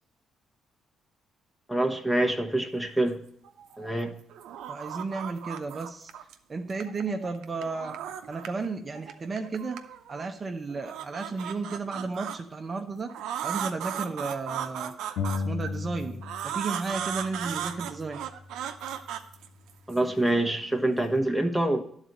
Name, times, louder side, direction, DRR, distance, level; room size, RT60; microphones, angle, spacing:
voice 1, 1.7-3.2 3.8-4.2 19.9-21.8, right 1 dB, ahead, 4 dB, 1.1 m, -26 dB
sound 1, 3.4-4.0 4.3-6.3 6.7-8.7 8.9-10.3 10.7-12.4 13.1-15.7 16.2-20.0, right 9 dB, 85° right, 0.6 m, -36 dB
voice 2, 4.7-8.0 8.3-9.8 10.1-13.1 13.4-14.9 15.4-18.2, right 4 dB, 35° right, 4 dB, 0.7 m, -33 dB
sound 2, 15.2-16.7 16.9-18.7, left 4 dB, 90° left, 1.2 m, -35 dB
11.0 x 4.1 x 7.6 m, 0.67 s
cardioid pair, 90°, 0 cm